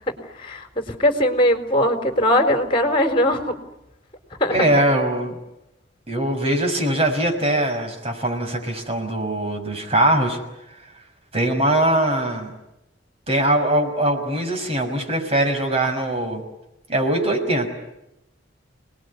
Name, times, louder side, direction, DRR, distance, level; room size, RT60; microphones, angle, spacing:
voice 1, 0.4-3.5 4.4-4.6, left 1 dB, 30° left, 6 dB, 4.1 m, -20 dB
voice 2, 4.5-5.3 6.1-10.4 10.7-10.8 11.3-12.6 13.3-16.4 16.9-17.7, right 1 dB, 35° right, 4 dB, 6.3 m, -21 dB
29.0 x 20.5 x 9.8 m, 0.88 s
head